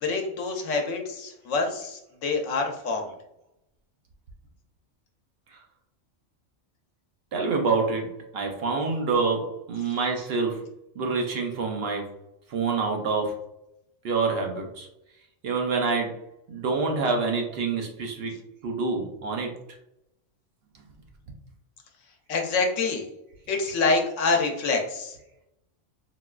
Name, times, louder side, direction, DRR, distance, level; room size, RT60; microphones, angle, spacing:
voice 1, 0.0-3.1 22.3-23.1 23.5-25.2, left 3 dB, 85° left, 3 dB, 1.0 m, -26 dB
voice 2, 7.3-10.6 11.0-12.1 12.5-13.4 14.0-14.9 15.4-16.2 16.5-18.3 18.6-19.5, right 4 dB, 65° right, 2 dB, 0.7 m, -27 dB
3.8 x 2.3 x 2.2 m, 0.83 s
omnidirectional pair, 1.3 m